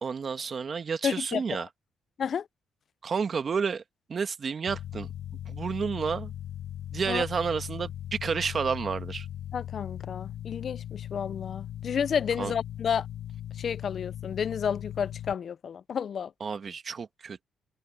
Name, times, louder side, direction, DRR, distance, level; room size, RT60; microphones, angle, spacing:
voice 1, 0.0-1.7 3.0-3.8 4.1-5.1 5.5-6.3 6.9-9.3 12.4-12.5 16.4-17.4, right 5 dB, 45° right, 1.6 m, -30 dB
voice 2, 1.0-1.6 2.2-2.5 7.1-7.2 9.5-13.1 13.6-16.3, left 7 dB, 55° left, 0.5 m, -31 dB
sound 1, 4.7-15.3, left 11 dB, 75° left, 5.4 m, -39 dB
cardioid pair, 90°, 0 cm